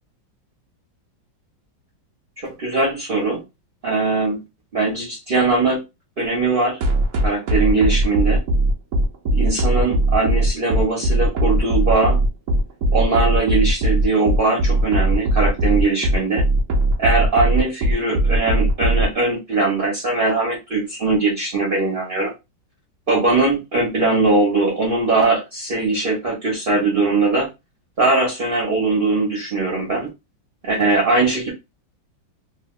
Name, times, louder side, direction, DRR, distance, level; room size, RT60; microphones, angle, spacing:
voice 1, 2.4-3.4 3.8-4.4 4.7-5.8 6.2-6.8 7.2-8.4 9.3-12.2 12.9-16.4 17.0-22.3 23.1-27.5 28.0-30.1 30.6-31.5, right 3 dB, 35° right, -3 dB, 1.0 m, -20 dB
sound 1, 6.8-19.1, right 1 dB, 60° right, 0.9 m, -18 dB
3.2 x 2.8 x 2.4 m, 0.23 s
omnidirectional pair, 2.1 m